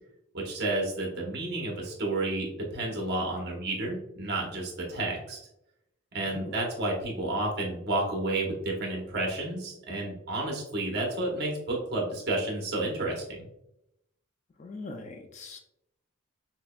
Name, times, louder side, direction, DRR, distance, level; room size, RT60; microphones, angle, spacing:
voice 1, 0.3-5.4 6.1-13.4, right 2 dB, 50° right, -1 dB, 0.9 m, -31 dB
voice 2, 14.6-15.6, left 3 dB, 35° left, 5 dB, 0.3 m, -41 dB
5.8 x 2.1 x 2.2 m, 0.82 s
head